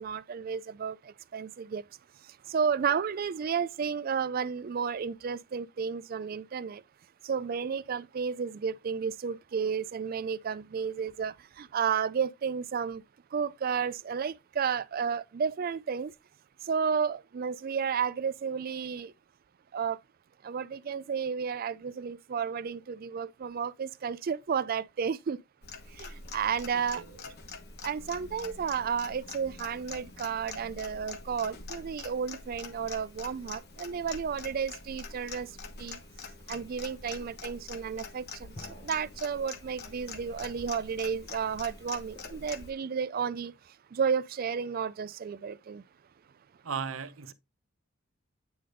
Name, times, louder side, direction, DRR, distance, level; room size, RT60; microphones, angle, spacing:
voice 1, 0.0-1.8 2.5-6.8 7.2-13.0 13.3-16.1 16.6-19.1 19.7-20.0 20.4-25.4 26.0-27.0 27.8-35.5 35.8-36.0 36.5-43.5 43.9-45.8, right 6 dB, 45° right, 0.3 m, -32 dB
Clock, 25.6-42.7, left 4 dB, 50° left, 1.2 m, -45 dB
voice 2, 26.7-27.1 46.6-47.3, right 6 dB, 75° right, 0.7 m, -37 dB
sound 1, 38.6-40.4, left 1 dB, 35° left, 0.7 m, -54 dB
9.4 x 3.4 x 3.9 m
head